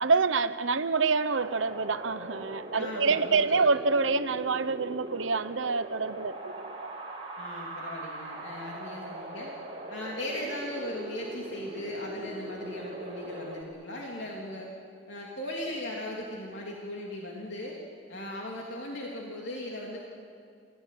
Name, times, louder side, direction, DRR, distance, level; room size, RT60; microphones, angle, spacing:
voice 1, 0.0-6.9, right 4 dB, 85° right, 12 dB, 1.0 m, -27 dB
Wind, 1.4-13.6, right 1 dB, 30° right, 3.9 m, -41 dB
voice 2, 2.7-3.6 7.4-9.5 9.9-14.7 15.1-17.8 18.1-20.0, left 1 dB, 70° left, -2 dB, 3.2 m, -38 dB
28.0 x 18.0 x 9.4 m, 2.3 s
head